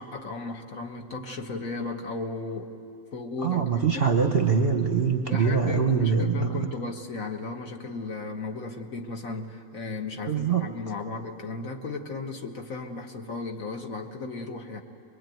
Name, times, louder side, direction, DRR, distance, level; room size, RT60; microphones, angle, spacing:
voice 1, 0.0-2.7 3.1-4.2 5.3-14.8, left 3 dB, 50° left, 3 dB, 1.7 m, -35 dB
voice 2, 3.4-6.7 10.3-10.7, right 6 dB, 40° right, 5 dB, 0.9 m, -23 dB
23.0 x 22.0 x 9.2 m, 2.5 s
omnidirectional pair, 1.9 m